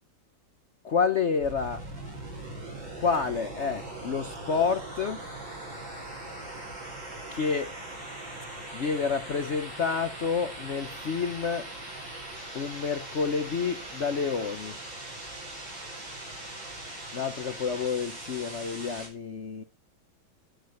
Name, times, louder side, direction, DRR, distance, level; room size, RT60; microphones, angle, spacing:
voice 1, 0.8-1.8 3.0-5.2 7.3-7.7 8.7-11.7 12.5-14.8 17.1-19.6, left 5 dB, 55° left, 0.8 m, -29 dB
sound 1, 1.4-19.1, right 2 dB, 70° right, 6.2 m, -41 dB
12.0 x 7.9 x 7.7 m
omnidirectional pair, 2.1 m